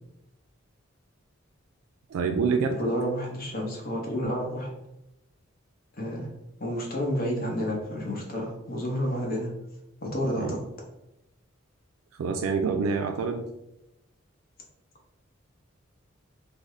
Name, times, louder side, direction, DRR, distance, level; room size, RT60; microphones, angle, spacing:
voice 1, 2.1-2.8 10.4-10.6 12.2-13.4, right 5 dB, 90° right, 4 dB, 0.3 m, -26 dB
voice 2, 2.8-4.7 6.0-6.3 6.6-9.5 10.0-10.6, equal, 45° left, 0 dB, 0.7 m, -30 dB
3.7 x 2.1 x 3.1 m, 0.87 s
head